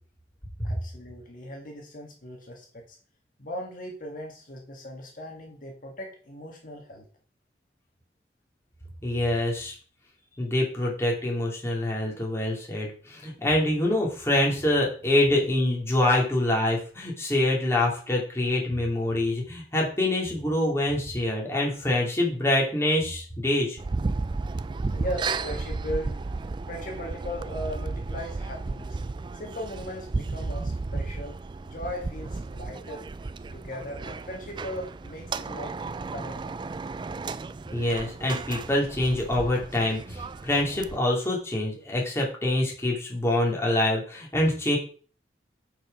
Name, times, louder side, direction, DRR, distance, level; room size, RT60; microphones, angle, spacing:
voice 1, 0.6-3.0 3.4-7.0 10.3-10.4 24.9-26.3 26.7-29.0 29.3-33.1 33.5-35.7 36.1-36.6, equal, 50° left, 0 dB, 1.7 m, -38 dB
voice 2, 9.0-9.7 10.4-23.8 37.7-44.8, left 1 dB, 15° left, -2 dB, 2.5 m, -25 dB
sound 1, 23.8-41.0, right 3 dB, 25° right, 0.3 m, -34 dB
8.9 x 4.8 x 5.1 m, 0.42 s
head